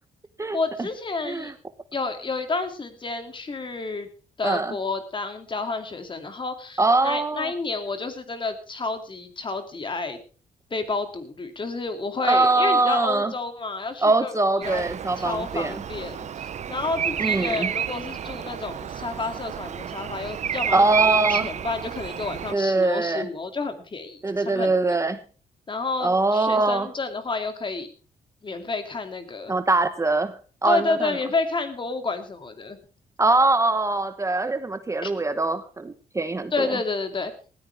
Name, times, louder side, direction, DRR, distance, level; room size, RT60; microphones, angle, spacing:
voice 1, 0.5-1.5 1.9-4.1 4.4-10.2 10.7-14.8 15.2-24.7 25.7-27.9 28.4-29.5 30.6-32.8 35.0-35.1 36.5-37.3, left 3 dB, 35° left, 7 dB, 2.5 m, -30 dB
voice 2, 4.4-4.7 6.8-7.5 12.2-13.3 14.0-15.8 17.2-17.7 20.7-21.5 22.5-23.3 24.2-25.2 26.0-26.9 29.5-30.3 30.6-31.1 33.2-36.7, right 2 dB, 20° right, 10 dB, 1.0 m, -22 dB
Bird vocalization bird call bird song, 14.6-22.5, right 8 dB, 50° right, 0.6 m, -30 dB
19.0 x 14.0 x 3.4 m, 0.38 s
cardioid pair, 120°, 15 cm